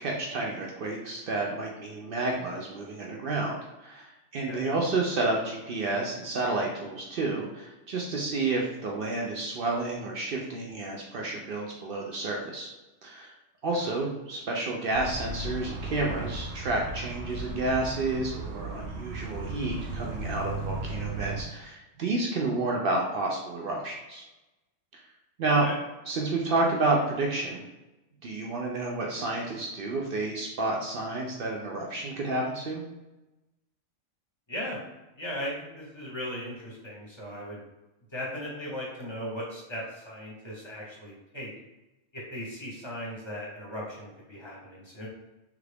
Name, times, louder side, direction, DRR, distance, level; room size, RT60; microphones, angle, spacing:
voice 1, 0.0-12.7 13.0-13.3 13.6-24.2 25.4-25.7 26.1-27.7 28.2-32.9, right 2 dB, 65° right, -1 dB, 0.5 m, -30 dB
sound 1, 14.9-21.4, right 3 dB, 80° right, 1.0 m, -36 dB
voice 2, 35.2-37.6 38.1-41.5 42.1-45.1, equal, 25° left, -4 dB, 0.7 m, -37 dB
3.3 x 2.4 x 3.3 m, 1.0 s
omnidirectional pair, 1.4 m